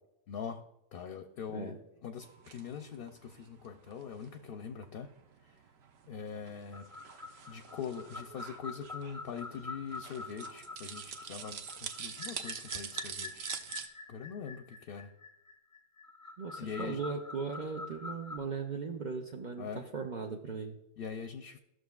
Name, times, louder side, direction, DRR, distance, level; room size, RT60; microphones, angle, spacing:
voice 1, 0.3-0.6 0.9-5.1 5.4-5.6 6.1-6.9 7.5-13.5 14.1-15.1 16.6-17.0 19.6-19.9 21.0-21.6, left 6 dB, 65° left, 7 dB, 0.7 m, -42 dB
sound 1, 2.2-13.9, right 7 dB, 70° right, 0.9 m, -46 dB
sound 2, 6.7-18.4, left 3 dB, 25° left, 0.4 m, -46 dB
voice 2, 16.4-20.8, right 5 dB, 50° right, 2 dB, 0.7 m, -38 dB
15.0 x 6.2 x 2.3 m, 0.86 s
omnidirectional pair, 1.2 m